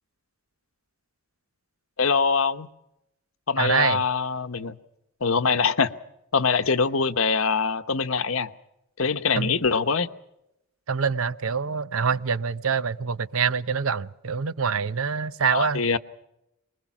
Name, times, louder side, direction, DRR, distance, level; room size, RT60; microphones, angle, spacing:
voice 1, 2.0-2.7 3.5-4.8 5.2-5.9 6.3-8.5 9.0-10.1 15.5-16.0, left 5 dB, 75° left, 1.0 m, -23 dB
voice 2, 3.6-4.0 9.4-9.6 10.9-15.8, right 6 dB, 80° right, 0.8 m, -25 dB
24.0 x 21.0 x 6.0 m
head